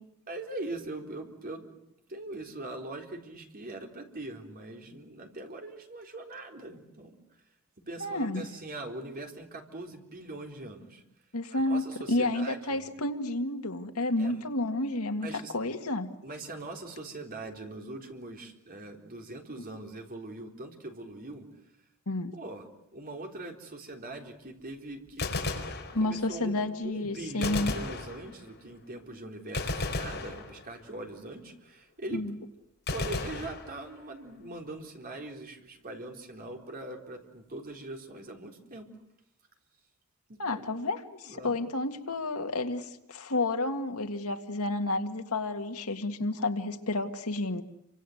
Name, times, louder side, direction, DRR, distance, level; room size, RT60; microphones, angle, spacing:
voice 1, 0.3-1.6 2.1-7.2 7.9-11.0 11.5-12.8 14.2-14.4 15.2-15.5 16.2-21.5 22.3-22.7 22.9-25.3 26.0-32.2 32.9-38.9 40.3-40.7 41.2-41.6, right 2 dB, 40° right, 2 dB, 4.0 m, -42 dB
voice 2, 8.0-8.4 11.3-15.3 15.5-16.1 22.1-22.3 25.9-27.7 32.1-32.3 40.4-47.6, left 2 dB, 80° left, 6 dB, 2.0 m, -30 dB
Gunshot gunfire, 25.1-26.4 27.4-28.6 29.5-31.0 32.9-34.2, left 2 dB, 50° left, 4.9 m, -35 dB
29.0 x 25.0 x 8.0 m, 0.81 s
head